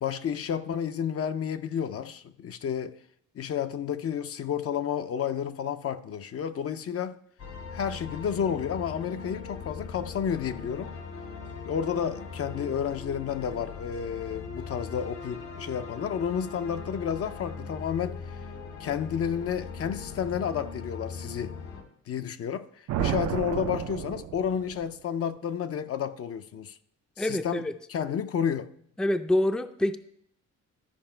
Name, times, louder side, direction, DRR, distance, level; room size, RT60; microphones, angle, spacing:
voice 1, 0.0-3.0 3.4-7.2 7.7-10.9 11.6-18.2 18.8-21.5 22.1-22.7 23.0-26.8 27.2-28.7, left 8 dB, 50° left, 0.6 m, -31 dB
sound 1, 7.4-21.8, left 5 dB, 75° left, 2.0 m, -40 dB
sound 2, 22.9-24.9, right 11 dB, 65° right, 0.5 m, -31 dB
voice 2, 27.2-27.7 29.0-30.0, left 1 dB, 5° left, 0.5 m, -26 dB
13.0 x 5.2 x 4.4 m
cardioid pair, 90°, 30 cm